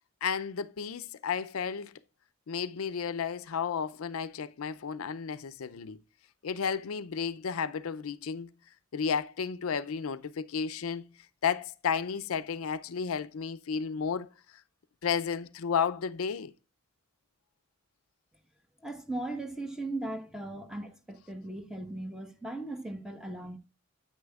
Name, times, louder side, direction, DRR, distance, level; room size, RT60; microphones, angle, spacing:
voice 1, 0.2-1.9 2.5-6.0 6.4-8.5 8.9-11.1 11.4-14.3 15.0-16.5, left 6 dB, 80° left, 0.5 m, -32 dB
voice 2, 18.8-23.6, right 2 dB, 5° right, 1.1 m, -38 dB
9.6 x 8.7 x 2.3 m
head